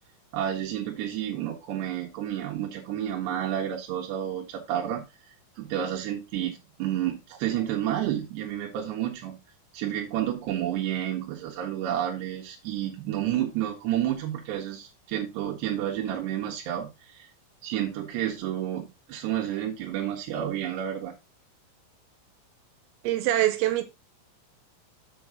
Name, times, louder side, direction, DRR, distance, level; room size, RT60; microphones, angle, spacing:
voice 1, 0.3-5.0 5.6-9.4 9.7-17.3 17.6-21.1, right 11 dB, 65° right, 3.3 m, -30 dB
voice 2, 23.0-23.8, right 14 dB, 80° right, 3.6 m, -24 dB
7.5 x 7.0 x 3.9 m
omnidirectional pair, 6.0 m